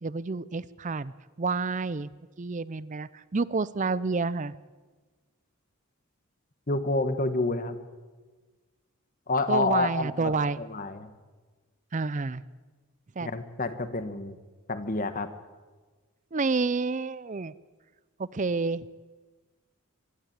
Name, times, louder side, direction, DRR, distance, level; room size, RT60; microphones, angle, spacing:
voice 1, 0.0-2.1 2.4-4.5 9.5-10.6 11.9-12.4 13.2-13.3 16.3-17.5 18.2-18.9, right 4 dB, 35° right, 18 dB, 0.5 m, -29 dB
voice 2, 6.7-7.8 9.3-11.1 13.2-14.4 14.7-15.3, left 3 dB, 40° left, 10 dB, 1.3 m, -29 dB
24.5 x 12.5 x 8.8 m, 1.4 s
head